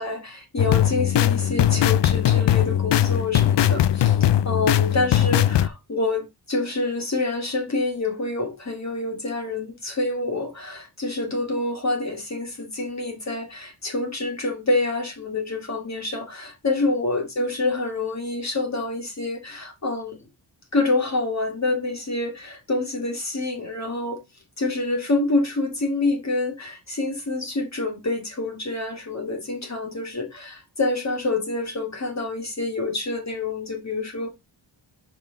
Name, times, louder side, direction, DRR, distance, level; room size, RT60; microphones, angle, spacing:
voice 1, 0.0-20.2 20.7-24.2 24.6-34.3, left 2 dB, 35° left, 1.7 m, -27 dB
sound 1, 0.6-5.7, left 11 dB, 65° left, 0.5 m, -20 dB
5.8 x 5.4 x 3.8 m
wide cardioid pair, 145°, 46 cm